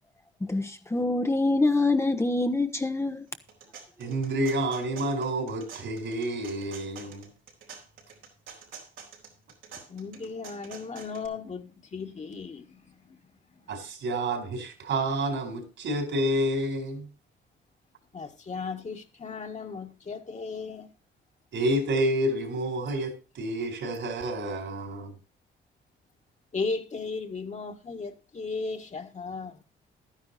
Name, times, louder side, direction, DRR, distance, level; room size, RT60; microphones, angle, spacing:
voice 1, 0.4-3.2, left 2 dB, 15° left, 1.0 m, -25 dB
sound 1, 3.3-11.3, right 6 dB, 85° right, 4.2 m, -47 dB
voice 2, 4.0-7.3 13.7-17.1 21.5-25.1, right 1 dB, 70° right, 4.5 m, -29 dB
voice 3, 9.8-13.2 18.1-20.9 26.5-29.6, left 4 dB, 35° left, 1.8 m, -36 dB
12.0 x 9.9 x 4.2 m
cardioid pair, 90°, 20 cm